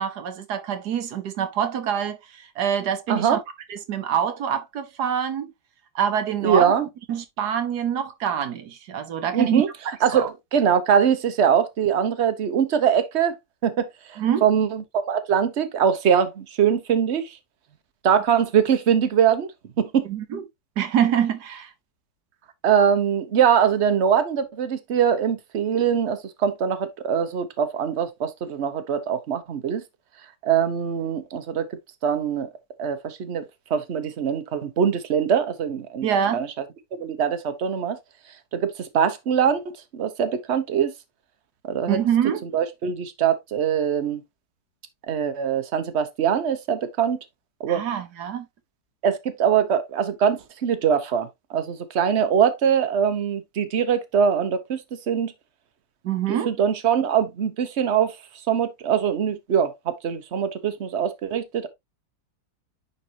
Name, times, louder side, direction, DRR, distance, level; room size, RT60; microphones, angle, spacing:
voice 1, 0.0-3.4 3.7-5.5 5.9-6.7 7.1-9.6 10.1-10.3 14.2-14.5 20.1-20.4 20.8-21.7 36.0-36.4 41.9-42.4 47.7-48.5 56.0-56.5, right 9 dB, 70° right, 1.5 m, -25 dB
voice 2, 6.4-6.9 9.3-9.7 10.0-10.3 10.5-13.3 13.6-17.4 18.0-19.5 19.8-20.1 22.6-29.8 30.4-32.5 32.8-33.4 33.7-36.1 36.3-36.5 36.9-38.0 38.5-40.9 41.6-42.0 42.4-44.2 45.1-47.2 47.6-47.8 49.0-54.8 55.1-55.3 56.3-58.2 58.5-61.7, right 8 dB, 45° right, 1.1 m, -22 dB
9.9 x 4.1 x 2.8 m
omnidirectional pair, 1.8 m